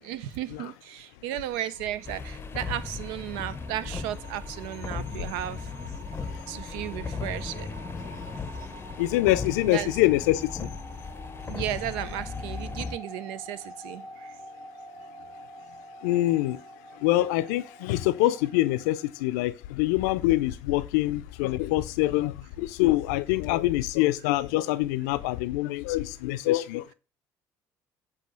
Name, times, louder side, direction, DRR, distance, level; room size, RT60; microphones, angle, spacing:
voice 1, 0.0-5.7 6.5-7.7 9.7-9.9 11.5-14.3, right 13 dB, 75° right, 0.5 m, -34 dB
sound 1, 1.7-19.2, right 1 dB, 50° right, 3.6 m, -47 dB
sound 2, 2.0-13.0, left 5 dB, 25° left, 0.6 m, -37 dB
voice 2, 9.0-10.5 16.0-16.6 17.0-26.9, left 16 dB, 80° left, 0.5 m, -25 dB
8.2 x 2.8 x 6.2 m
hypercardioid pair, 65°, 9 cm